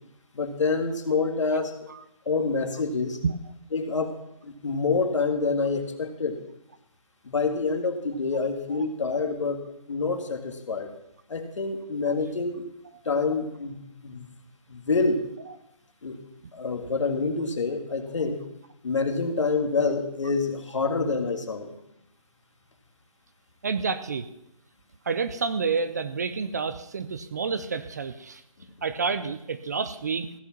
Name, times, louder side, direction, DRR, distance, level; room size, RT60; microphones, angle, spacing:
voice 1, 0.3-1.9 2.3-3.2 3.7-4.1 4.4-6.4 7.2-9.6 9.9-10.9 11.3-12.7 13.1-13.8 14.0-14.3 14.7-15.3 16.0-16.2 16.5-18.4 18.8-21.7, left 4 dB, 55° left, 6 dB, 2.1 m, -27 dB
voice 2, 23.6-24.3 25.1-28.4 28.8-30.3, right 5 dB, 30° right, 12 dB, 0.5 m, -29 dB
16.0 x 8.2 x 6.0 m, 0.81 s
figure-of-eight pair, 160°, 18 cm